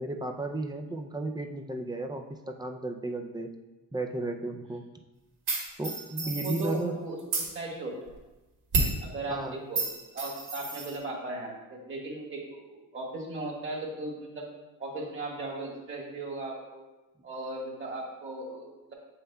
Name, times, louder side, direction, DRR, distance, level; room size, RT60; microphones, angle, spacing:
voice 1, 0.0-3.5 3.9-4.8 5.8-7.0 9.3-9.6, right 2 dB, 10° right, 4 dB, 0.3 m, -34 dB
sound 1, 5.5-6.8 7.2-7.5 8.7-9.0 9.8-11.0, right 3 dB, 70° right, 1.8 m, -30 dB
voice 2, 6.2-8.1 9.0-9.8 10.1-14.5 14.8-16.8 17.2-18.9, right 2 dB, 30° right, -3 dB, 1.6 m, -37 dB
7.9 x 5.6 x 2.2 m, 1.1 s
cardioid pair, 140°, 40 cm